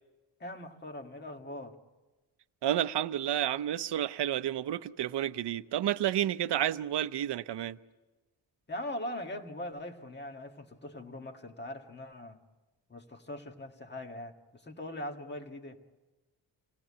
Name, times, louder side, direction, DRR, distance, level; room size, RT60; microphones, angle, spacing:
voice 1, 0.4-1.8 8.7-12.4 12.9-15.8, left 1 dB, 25° left, 1.7 m, -41 dB
voice 2, 2.6-7.8, right 11 dB, 65° right, 0.7 m, -30 dB
27.5 x 18.0 x 8.5 m
wide cardioid pair, 145°, 44 cm